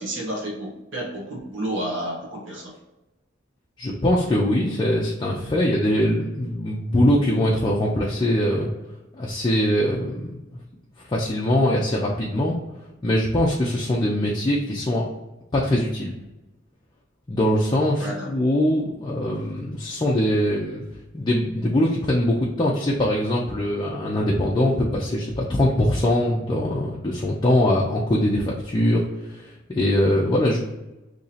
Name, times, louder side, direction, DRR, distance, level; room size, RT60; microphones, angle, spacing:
voice 1, 0.0-2.7 18.0-18.3, right 1 dB, 70° right, -3 dB, 0.9 m, -31 dB
voice 2, 3.8-8.7 9.2-10.4 11.0-12.6 13.0-15.1 15.5-16.1 17.3-20.8 21.1-30.6, left 1 dB, 25° left, -3 dB, 0.4 m, -22 dB
2.8 x 2.7 x 4.0 m, 1.0 s
head